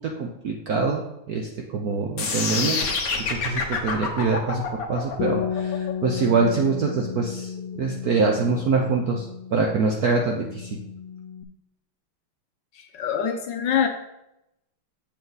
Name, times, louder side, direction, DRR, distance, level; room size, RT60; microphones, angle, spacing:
voice 1, 0.0-2.8 3.2-9.3 9.5-10.8, right 4 dB, 70° right, 2 dB, 0.9 m, -24 dB
sound 1, 2.2-8.2, left 4 dB, 45° left, 1.4 m, -28 dB
Bass guitar, 5.2-11.4, left 8 dB, 85° left, 1.5 m, -33 dB
voice 2, 12.7-13.9, left 8 dB, 65° left, 5 dB, 1.2 m, -25 dB
7.4 x 6.8 x 4.0 m, 0.87 s
omnidirectional pair, 2.4 m